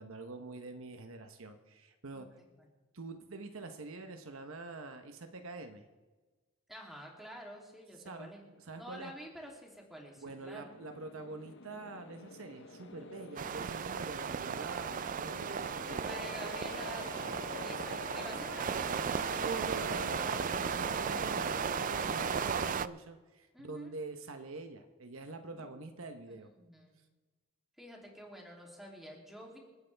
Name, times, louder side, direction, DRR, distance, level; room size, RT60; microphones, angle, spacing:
voice 1, 0.0-2.4 2.9-5.9 8.0-8.3 8.6-9.1 10.2-16.1 19.3-26.5, right 3 dB, 65° right, 6 dB, 1.0 m, -45 dB
voice 2, 6.7-8.4 8.8-10.8 16.1-17.3 17.6-19.3 23.5-23.9 25.5-25.8 26.2-26.9 27.8-29.6, equal, ahead, -2 dB, 3.0 m, -49 dB
sound 1, 10.3-22.8, left 3 dB, 55° left, 1.0 m, -46 dB
sound 2, 13.4-22.9, right 7 dB, 40° right, 0.3 m, -35 dB
28.0 x 9.5 x 3.5 m, 1.3 s
head